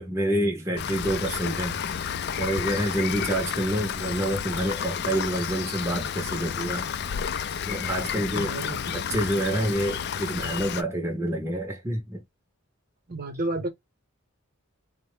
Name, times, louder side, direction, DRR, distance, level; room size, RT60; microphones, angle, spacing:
voice 1, 0.0-1.8 2.4-6.9 7.7-8.5 8.9-12.2, right 1 dB, 15° right, 0.7 m, -28 dB
Rain, 0.8-10.8, left 8 dB, 50° left, 0.4 m, -31 dB
voice 2, 8.2-8.9 13.1-13.7, right 2 dB, 45° right, 0.9 m, -32 dB
4.1 x 2.1 x 3.2 m
head